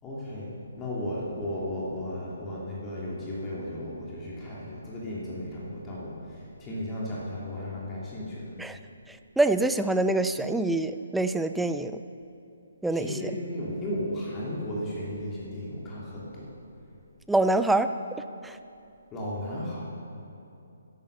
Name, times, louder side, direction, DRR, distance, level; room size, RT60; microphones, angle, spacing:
voice 1, 0.0-8.5 12.9-16.5 19.1-19.8, left 1 dB, 15° left, -6 dB, 2.9 m, -35 dB
voice 2, 9.4-12.0 12.8-13.3 17.3-17.9 18.4-18.6, right 2 dB, 5° right, 10 dB, 0.4 m, -25 dB
12.5 x 11.5 x 6.8 m, 2.7 s
figure-of-eight pair, 135°, 0 cm